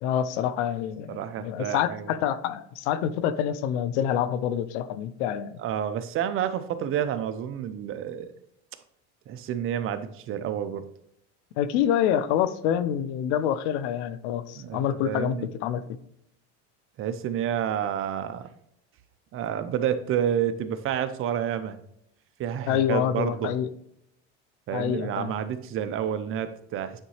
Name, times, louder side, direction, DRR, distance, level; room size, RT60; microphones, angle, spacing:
voice 1, 0.0-5.6 11.6-15.8 22.7-23.7 24.7-25.3, left 9 dB, 80° left, 14 dB, 0.7 m, -27 dB
voice 2, 1.1-2.1 5.6-8.3 9.3-10.9 14.6-15.5 17.0-18.5 19.3-21.8 22.4-23.5 24.7-27.0, right 9 dB, 40° right, 11 dB, 0.6 m, -29 dB
8.9 x 4.0 x 3.1 m, 0.74 s
supercardioid pair, 130°, 34 cm